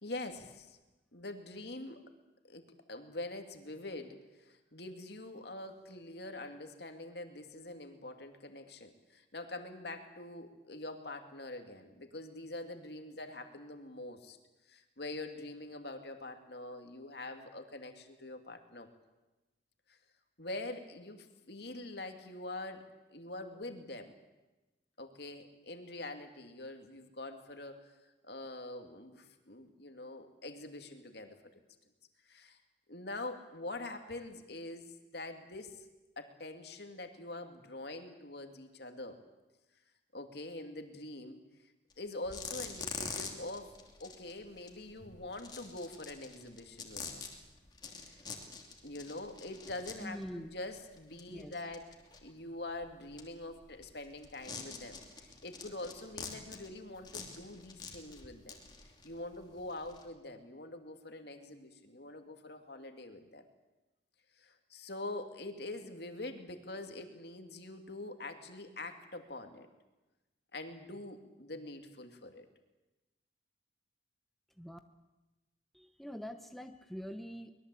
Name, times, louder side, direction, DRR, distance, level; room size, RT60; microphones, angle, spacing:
voice 1, 0.0-0.8 1.1-2.1 2.4-2.6 2.9-14.4 14.7-18.9 19.9-20.0 20.4-22.8 23.1-24.1 25.0-27.8 28.2-31.4 32.3-32.6 32.9-35.8 36.2-39.2 40.1-41.4 42.0-47.2 48.1-48.2 48.8-51.8 52.2-58.6 59.0-63.4 64.4-69.7 70.5-72.5, left 2 dB, 60° left, 6 dB, 2.6 m, -44 dB
sound 1, 41.9-42.0 42.2-60.1, left 5 dB, 20° left, 2.9 m, -46 dB
voice 2, 50.0-50.5 51.3-51.5 74.6-74.8 75.7-77.5, equal, ahead, 6 dB, 1.0 m, -44 dB
24.0 x 21.5 x 8.4 m, 1.1 s
head